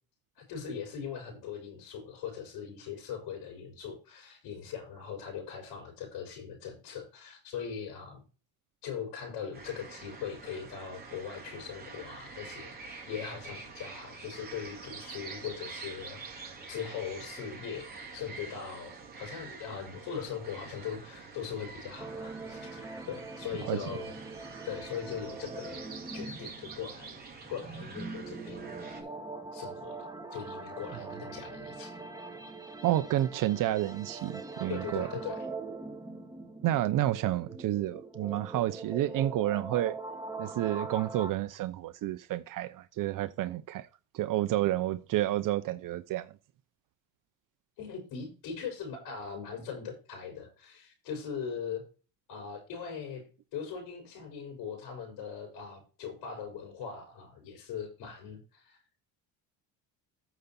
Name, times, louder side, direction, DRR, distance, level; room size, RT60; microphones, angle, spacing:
voice 1, 0.4-8.2 8.8-24.1 24.6-27.1 27.5-28.7 29.0-29.1 29.5-31.9 34.7-35.5 47.8-51.8 52.3-53.2 53.5-58.8, left 7 dB, 75° left, 5.8 m, -40 dB
sound 1, 9.5-29.0, right 4 dB, 25° right, 4.6 m, -46 dB
sound 2, 22.0-41.3, right 3 dB, 10° right, 2.0 m, -42 dB
voice 2, 32.8-35.1 36.6-39.9 40.4-43.9 44.1-46.3, right 14 dB, 60° right, 0.9 m, -30 dB
9.3 x 6.9 x 4.4 m
cardioid pair, 115°, 36 cm